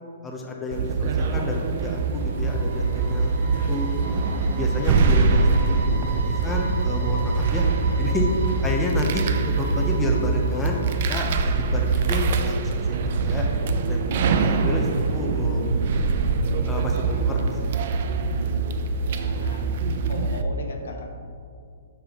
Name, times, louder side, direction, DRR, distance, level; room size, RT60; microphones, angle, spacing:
voice 1, 0.2-3.3 3.7-3.9 4.5-7.6 8.0-8.3 8.6-10.8 11.1-13.5 13.9-14.1 14.4-15.6 16.7-17.7, left 2 dB, 10° left, -1 dB, 0.5 m, -30 dB
sound 1, 0.7-20.4, right 4 dB, 45° right, 0.4 m, -23 dB
sound 2, 1.7-11.7, right 2 dB, 80° right, 0.9 m, -39 dB
voice 2, 19.0-19.7 20.1-21.1, left 1 dB, 70° left, 2 dB, 0.9 m, -36 dB
5.8 x 5.1 x 3.5 m, 2.4 s
hypercardioid pair, 165°, 0 cm